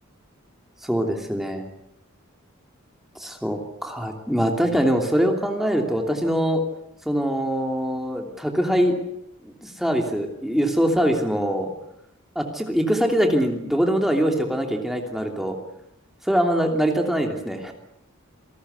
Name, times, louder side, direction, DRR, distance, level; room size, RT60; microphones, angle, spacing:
voice 1, 0.8-1.6 3.2-6.6 7.0-9.0 9.4-11.7 12.3-15.6 16.2-17.7, equal, ahead, 3 dB, 2.9 m, -23 dB
28.0 x 19.0 x 8.2 m, 0.78 s
head